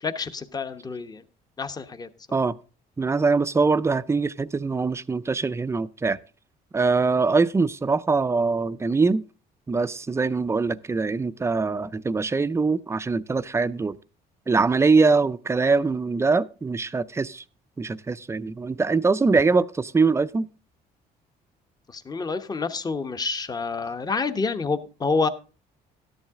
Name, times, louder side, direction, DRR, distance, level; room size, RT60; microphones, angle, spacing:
voice 1, 0.0-1.2 1.6-2.1 21.9-25.3, left 4 dB, 25° left, 1.0 m, -28 dB
voice 2, 3.0-6.2 6.7-9.2 9.7-14.0 14.5-17.4 17.8-20.5, right 4 dB, 15° right, 0.5 m, -23 dB
13.5 x 10.5 x 3.6 m
cardioid pair, 110°, 17 cm